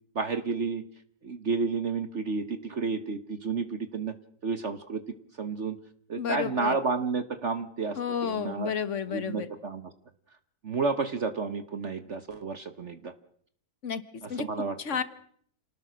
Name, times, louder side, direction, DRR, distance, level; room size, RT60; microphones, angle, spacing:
voice 1, 0.1-0.8 1.2-4.1 4.4-5.0 5.4-5.8 6.1-8.7 9.1-9.9 10.6-13.1 14.2-14.8, right 4 dB, 45° right, 11 dB, 1.3 m, -31 dB
voice 2, 6.2-6.7 8.0-9.5 13.8-14.0 14.3-14.4 14.8-15.0, left 7 dB, 45° left, 13 dB, 1.6 m, -31 dB
28.0 x 18.5 x 6.3 m, 0.62 s
omnidirectional pair, 1.9 m